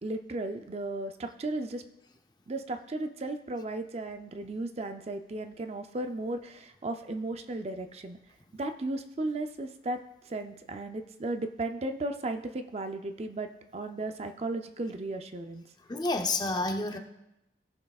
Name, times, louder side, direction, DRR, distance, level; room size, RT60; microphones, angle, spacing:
voice 1, 0.0-1.8 2.5-8.2 8.6-15.6, right 2 dB, 35° right, 6 dB, 0.4 m, -35 dB
voice 2, 15.9-17.0, left 2 dB, 25° left, 5 dB, 0.6 m, -29 dB
17.0 x 6.4 x 2.4 m, 0.88 s
head